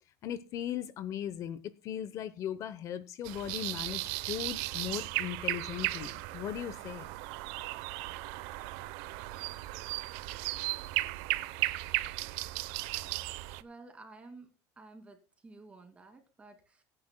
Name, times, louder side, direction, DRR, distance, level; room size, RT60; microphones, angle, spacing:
voice 1, 0.2-7.1, left 10 dB, 45° left, 15 dB, 0.8 m, -38 dB
sound 1, 3.2-13.6, right 19 dB, 85° right, 0.8 m, -36 dB
voice 2, 13.6-14.5 14.8-16.8, right 3 dB, 15° right, 6 dB, 2.5 m, -52 dB
23.0 x 9.9 x 2.2 m, 0.31 s
cardioid pair, 160°, 8 cm